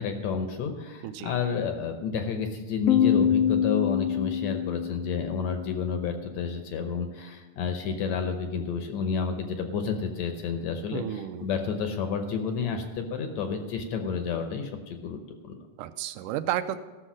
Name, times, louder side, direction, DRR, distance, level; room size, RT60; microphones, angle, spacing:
voice 1, 0.0-15.2 15.4-15.6, left 6 dB, 70° left, 6 dB, 2.0 m, -30 dB
Piano, 2.9-6.3, left 9 dB, 90° left, 1.4 m, -26 dB
voice 2, 10.9-11.5 15.8-16.8, right 12 dB, 85° right, 12 dB, 2.1 m, -32 dB
14.5 x 6.6 x 6.1 m, 1.2 s
omnidirectional pair, 3.7 m